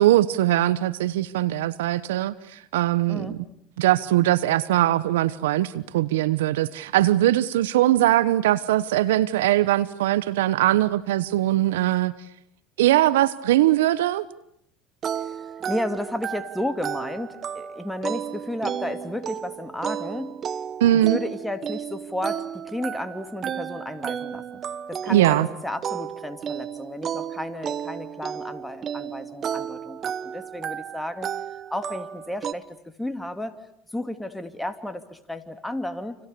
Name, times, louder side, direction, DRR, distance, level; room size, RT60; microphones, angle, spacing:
voice 1, 0.0-2.3 2.7-3.4 3.8-12.1 12.8-14.3 20.8-21.2 25.1-25.5, right 14 dB, 80° right, 16 dB, 1.1 m, -21 dB
sound 1, 15.0-32.5, right 8 dB, 40° right, 1.2 m, -33 dB
voice 2, 15.1-20.4 21.1-24.6 24.9-31.3 31.7-33.6 33.9-36.2, left 1 dB, 5° left, 8 dB, 2.8 m, -33 dB
29.5 x 28.5 x 6.9 m, 0.72 s
hypercardioid pair, 80°, 0 cm